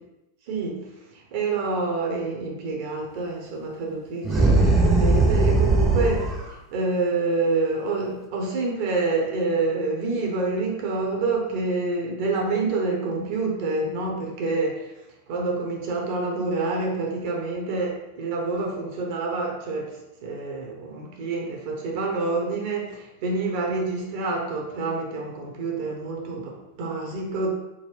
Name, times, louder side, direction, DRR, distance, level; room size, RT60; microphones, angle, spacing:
voice 1, 0.5-14.9 15.3-27.5, right 3 dB, 50° right, -1 dB, 0.8 m, -27 dB
sound 1, 4.2-6.4, right 2 dB, 15° right, 0.7 m, -19 dB
3.8 x 2.2 x 3.2 m, 0.93 s
figure-of-eight pair, 90°, 0 cm